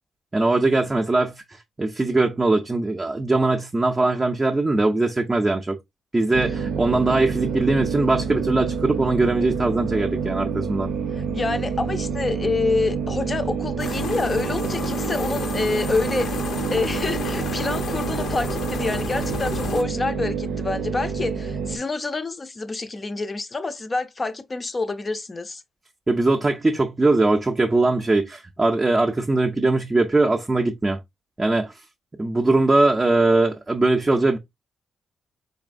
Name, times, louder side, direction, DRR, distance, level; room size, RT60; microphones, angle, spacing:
voice 1, 0.3-1.3 1.8-5.8 6.1-10.9 26.1-31.0 31.4-31.7 32.2-34.4, right 2 dB, 20° right, 0.5 m, -21 dB
sound 1, 6.3-21.8, right 6 dB, 90° right, 0.6 m, -28 dB
voice 2, 11.1-25.6, left 3 dB, 25° left, 0.5 m, -27 dB
sound 2, 13.8-19.8, left 6 dB, 70° left, 0.6 m, -31 dB
4.1 x 3.0 x 2.5 m
cardioid pair, 105°, 0 cm